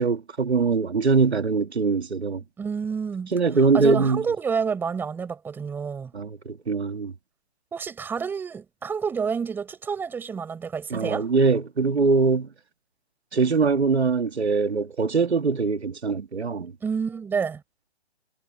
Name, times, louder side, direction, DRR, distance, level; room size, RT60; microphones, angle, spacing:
voice 1, 0.0-2.4 3.3-4.2 6.1-7.1 10.9-12.5 13.3-16.7, right 4 dB, 90° right, 2.8 m, -22 dB
voice 2, 2.6-3.3 3.7-6.1 7.7-11.3 16.8-17.6, right 6 dB, 5° right, 4.7 m, -29 dB
hypercardioid pair, 160°, 32 cm